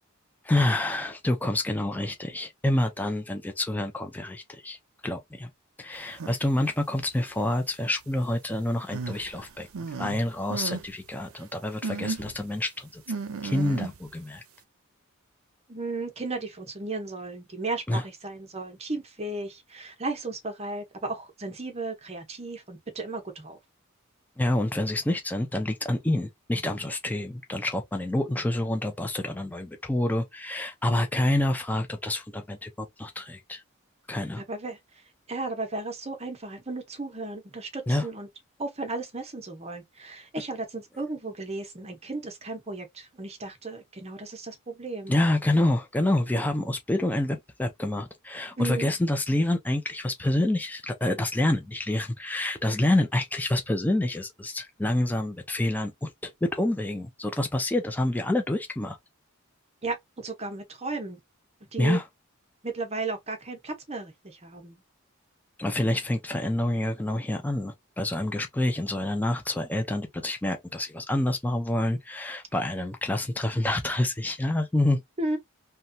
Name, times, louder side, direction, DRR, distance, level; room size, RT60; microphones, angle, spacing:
voice 1, 0.4-4.8 5.0-5.5 5.8-9.7 10.0-13.0 13.4-14.4 17.9-18.0 24.4-33.6 34.1-34.4 37.9-38.1 45.1-59.0 61.8-62.0 65.6-75.0, left 1 dB, 10° left, 0.4 m, -27 dB
sound 1, 6.1-6.3 7.0-7.1 8.9-10.2 10.5-10.9 11.2-11.3 11.8-12.4 13.1-14.1, right 4 dB, 80° right, 0.5 m, -34 dB
voice 2, 15.7-23.6 34.4-34.8 35.3-38.3 38.6-45.2 48.6-48.9 52.8-52.9 59.8-61.2 61.7-62.0 62.6-64.8 75.2-75.4, right 3 dB, 30° right, 0.8 m, -35 dB
3.1 x 2.2 x 2.6 m
head